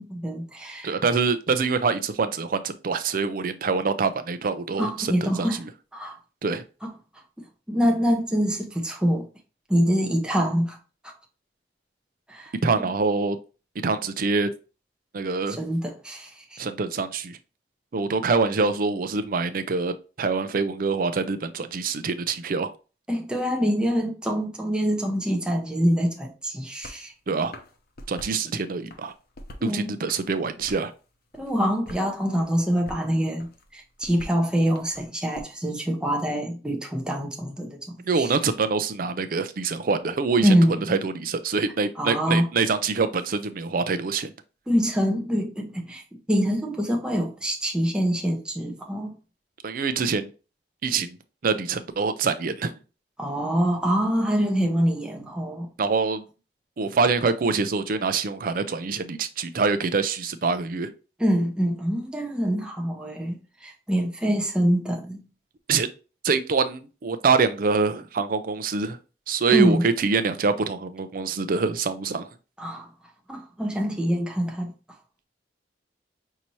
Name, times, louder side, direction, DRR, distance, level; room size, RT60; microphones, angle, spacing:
voice 1, 0.0-1.0 4.8-5.6 5.9-6.2 7.7-9.3 9.7-10.8 11.0-11.1 12.3-12.5 12.8-12.9 15.6-16.6 23.1-27.1 29.6-29.9 31.4-37.8 38.2-38.3 40.4-41.0 42.0-42.5 44.7-46.0 46.3-49.1 53.2-55.7 61.2-65.2 69.5-69.8 72.6-72.9 73.3-74.7, equal, 5° right, 0.7 m, -25 dB
voice 2, 0.8-5.7 6.4-6.6 12.6-13.4 13.8-14.5 15.1-15.6 16.6-17.4 17.9-22.7 27.3-27.5 28.1-29.1 29.6-30.9 38.0-40.5 40.9-44.3 49.6-50.3 50.8-51.2 51.4-52.7 55.8-56.2 56.8-60.9 65.7-65.9 66.2-69.0 69.3-72.3, right 4 dB, 55° right, 0.5 m, -25 dB
sound 1, 26.8-27.0 27.4-28.4 28.8-29.7 30.1-31.0 31.3-32.1 32.4-33.1 33.4-35.4, left 1 dB, 60° left, 0.7 m, -44 dB
5.7 x 2.7 x 3.0 m
head